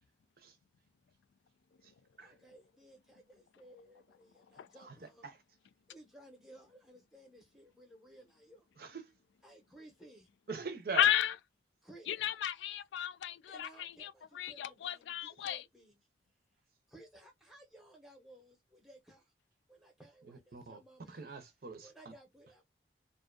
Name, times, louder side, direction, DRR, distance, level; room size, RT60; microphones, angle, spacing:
voice 1, 2.2-5.3 5.9-8.7 9.4-10.3 11.8-12.3 13.5-16.1 16.9-19.3 19.7-21.3 21.8-22.6, right 1 dB, ahead, 0.7 m, -58 dB
voice 2, 8.8-9.1 10.5-11.1 20.2-20.8 21.1-21.9, right 4 dB, 55° right, 0.6 m, -43 dB
voice 3, 10.9-11.3 12.1-14.1 14.4-15.6, left 10 dB, 80° left, 0.3 m, -33 dB
2.5 x 2.3 x 2.3 m
head